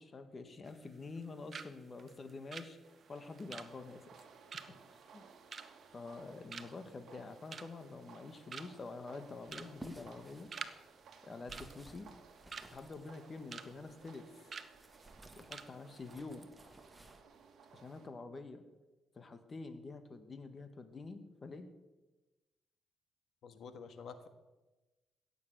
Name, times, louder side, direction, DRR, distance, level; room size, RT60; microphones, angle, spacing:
voice 1, 0.0-2.8 3.1-4.2 4.9-5.3 5.9-10.5 11.2-12.1 12.7-14.5 15.4-16.5 17.7-18.6 19.2-21.7, left 3 dB, 35° left, 9 dB, 1.6 m, -47 dB
sound 1, 0.6-1.2 1.5-1.7 2.0-6.2 6.5-6.9 7.3-7.9 8.2-8.3 8.5-8.9 9.4-9.7 10.0-10.8 11.0-11.2 11.5-12.7 13.1-13.7 14.0-14.1 14.5-14.7 15.1-15.2 15.5-15.7 16.0-16.1, right 5 dB, 45° right, 1.0 m, -47 dB
sound 2, 2.8-18.1, right 6 dB, 60° right, 1.8 m, -60 dB
sound 3, 9.4-14.2 14.7-17.2, right 1 dB, 10° right, 1.5 m, -56 dB
voice 2, 23.4-24.3, left 5 dB, 65° left, 10 dB, 1.5 m, -49 dB
16.5 x 7.2 x 8.2 m, 1.1 s
cardioid pair, 90°, 0 cm